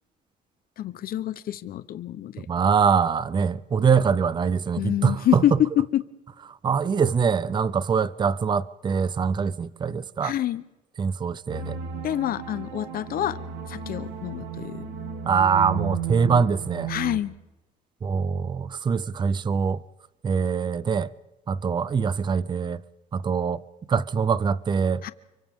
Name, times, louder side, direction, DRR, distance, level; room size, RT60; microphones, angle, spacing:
voice 1, 0.8-2.5 4.8-5.5 5.9-6.0 10.2-10.6 12.0-13.4 13.7-14.8 16.9-17.3 25.0-25.1, left 12 dB, 60° left, 1.0 m, -27 dB
voice 2, 2.5-5.6 6.5-10.4 11.0-11.8 15.2-16.9 18.0-19.8 20.2-21.1 21.5-22.8 23.1-23.6 23.9-25.0, right 6 dB, 25° right, 0.6 m, -23 dB
sound 1, 11.5-17.2, right 6 dB, 85° right, 2.3 m, -34 dB
29.5 x 23.5 x 3.7 m
cardioid pair, 110°, 17 cm